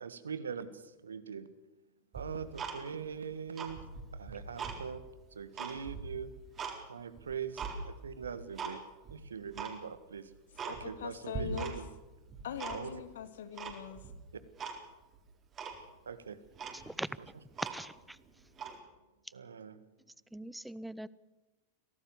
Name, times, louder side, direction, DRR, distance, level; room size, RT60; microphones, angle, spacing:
voice 1, 0.0-1.5 2.1-3.8 4.1-5.0 5.3-6.3 6.9-8.8 9.1-10.3 10.6-11.9 12.7-13.0 16.0-16.4 17.2-17.3 19.3-19.8, right 6 dB, 70° right, 14 dB, 1.6 m, -42 dB
Tick-tock, 2.1-3.2 3.5-4.8 5.2-6.8 7.2-7.8 8.2-8.8 9.0-9.1 9.5-9.8 10.2-10.3 10.6-11.1 11.3-12.0 12.3-13.1 13.6-14.1 14.6-14.8 15.1-15.2 15.6-15.8 16.3-16.4 16.6-18.1 18.5-18.8, right 5 dB, 25° right, 4.1 m, -41 dB
voice 2, 10.6-11.7 12.4-14.1, left 9 dB, 60° left, 11 dB, 2.1 m, -42 dB
voice 3, 17.7-18.2 20.3-21.1, right 1 dB, 5° right, 20 dB, 0.7 m, -41 dB
24.5 x 17.5 x 7.0 m, 1.1 s
figure-of-eight pair, 90°, 0 cm